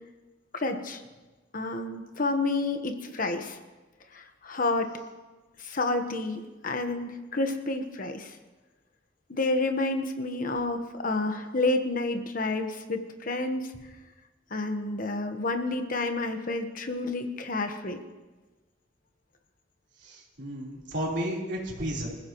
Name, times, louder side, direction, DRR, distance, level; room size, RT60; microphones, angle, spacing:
voice 1, 0.5-1.0 1.5-3.6 4.1-4.9 5.6-8.4 9.3-13.7 14.5-18.0, left 2 dB, 45° left, 6 dB, 1.3 m, -29 dB
voice 2, 20.0-22.1, equal, 65° right, -4 dB, 4.0 m, -33 dB
26.0 x 15.0 x 3.1 m, 1.2 s
head